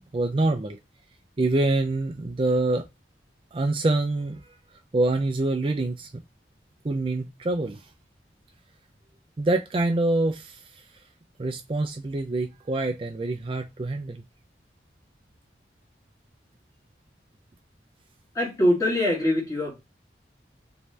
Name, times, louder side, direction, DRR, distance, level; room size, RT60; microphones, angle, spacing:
voice 1, 0.1-0.8 1.4-2.9 3.5-4.4 4.9-6.1 6.8-7.8 9.4-10.8 11.4-14.2, right 2 dB, 30° right, 0.4 m, -25 dB
voice 2, 18.3-19.8, left 1 dB, 20° left, 1.5 m, -23 dB
3.1 x 2.6 x 3.3 m
head